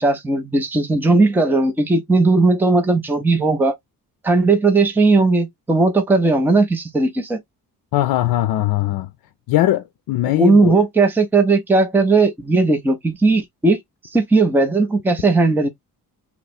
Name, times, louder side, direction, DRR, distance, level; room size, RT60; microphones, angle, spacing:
voice 1, 0.0-3.7 4.2-7.4 10.4-13.8 14.1-15.7, right 3 dB, 5° right, 0.5 m, -17 dB
voice 2, 7.9-9.1 9.5-10.7, left 14 dB, 75° left, 0.5 m, -20 dB
3.0 x 2.1 x 4.2 m
cardioid pair, 160°, 36 cm